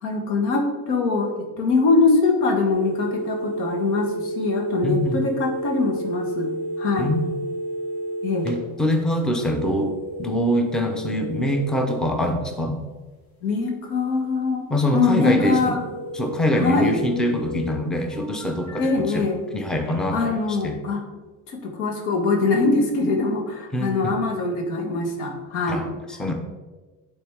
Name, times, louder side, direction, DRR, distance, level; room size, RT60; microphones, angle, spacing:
voice 1, 0.0-6.5 6.8-7.1 8.2-8.5 13.4-14.6 14.9-15.8 16.6-17.0 18.8-19.4 20.1-21.0 21.5-25.9, left 3 dB, 85° left, 3 dB, 1.5 m, -23 dB
sound 1, 2.7-8.5 9.3-11.7 15.7-17.7 18.1-19.0 19.8-20.3, right 1 dB, 50° left, 1.8 m, -32 dB
voice 2, 4.8-5.2 7.0-7.2 8.4-9.9 10.2-12.8 14.7-15.8 16.1-19.2 19.5-20.3 20.6-20.8 23.7-24.2 25.7-25.9 26.2-26.3, equal, ahead, 4 dB, 0.6 m, -24 dB
9.1 x 4.1 x 3.5 m, 1.3 s
cardioid pair, 130°, 36 cm